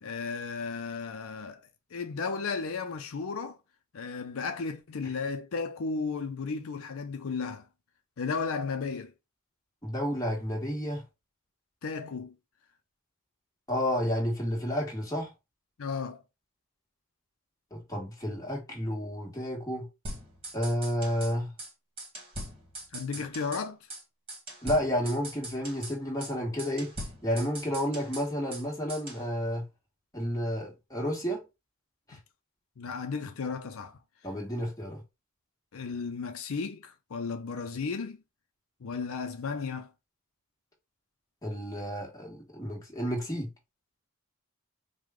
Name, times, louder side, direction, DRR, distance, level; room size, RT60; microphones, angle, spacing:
voice 1, 0.0-3.6 3.9-7.7 8.2-9.1 11.8-12.3 15.8-16.2 22.9-23.8 32.8-34.0 35.7-38.2 38.8-39.9, left 5 dB, 80° left, 0.5 m, -34 dB
voice 2, 9.8-11.0 13.7-15.3 17.7-19.9 20.5-21.5 24.6-26.9 27.2-29.6 30.1-31.4 32.1-32.2 34.2-35.0 41.4-43.5, equal, 15° left, 1.4 m, -31 dB
sound 1, 20.0-21.3 21.6-21.7 22.0-23.6 23.9-24.0 24.3-25.9 26.2-26.3 26.6-28.6 28.9-29.2, right 1 dB, 25° right, 1.3 m, -41 dB
4.8 x 2.2 x 3.6 m
head